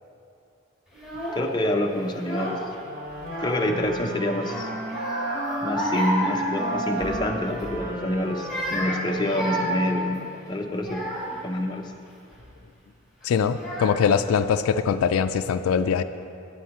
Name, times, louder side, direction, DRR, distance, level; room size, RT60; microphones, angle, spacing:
Child speech kid speaking / Crying sobbing, 0.9-1.5 2.1-2.8 3.1-3.9 4.4-7.2 7.5-7.8 8.3-11.4 12.1-12.4 13.2-13.3 13.6-14.3, equal, ahead, 2.2 m, -31 dB
voice 1, 1.3-2.6 3.4-4.7 5.6-11.1 11.4-11.9, left 1 dB, 20° left, 2 dB, 0.5 m, -27 dB
Wind instrument woodwind instrument, 2.8-10.3, right 1 dB, 45° right, 1.3 m, -33 dB
voice 2, 13.2-16.0, left 6 dB, 85° left, 11 dB, 0.3 m, -22 dB
9.3 x 8.7 x 4.2 m, 2.6 s
head